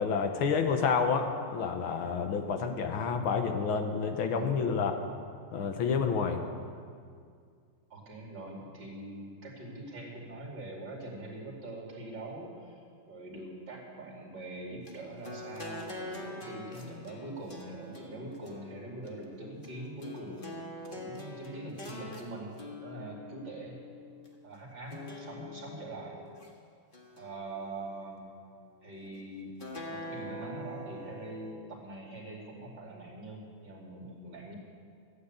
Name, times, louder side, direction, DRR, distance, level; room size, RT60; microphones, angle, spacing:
voice 1, 0.0-5.0 5.5-6.4, left 5 dB, 75° left, 5 dB, 1.9 m, -29 dB
voice 2, 7.9-23.8 24.4-26.2 27.2-28.2 28.8-29.5 29.9-34.5, right 2 dB, 55° right, -2 dB, 3.5 m, -43 dB
sound 1, 14.9-24.3 24.9-26.5 26.9-28.1 29.6-31.5, left 1 dB, 25° left, 1.6 m, -44 dB
15.5 x 9.4 x 8.1 m, 2.2 s
omnidirectional pair, 2.3 m